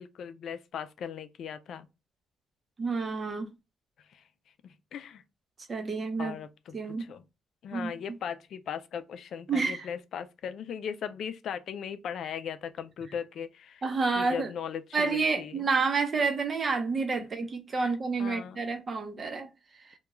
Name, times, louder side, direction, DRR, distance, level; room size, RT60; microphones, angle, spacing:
voice 1, 0.0-1.9 4.1-4.2 4.6-5.2 6.2-7.2 7.6-13.8 14.2-15.7 17.7-17.9 18.2-18.6, left 8 dB, 65° left, 0.3 m, -38 dB
voice 2, 2.8-3.5 5.7-6.4 6.7-7.1 7.7-7.9 9.5-9.9 13.8-14.5 14.9-19.5, right 4 dB, 40° right, 0.7 m, -29 dB
2.3 x 2.2 x 2.9 m
cardioid pair, 90°, 0 cm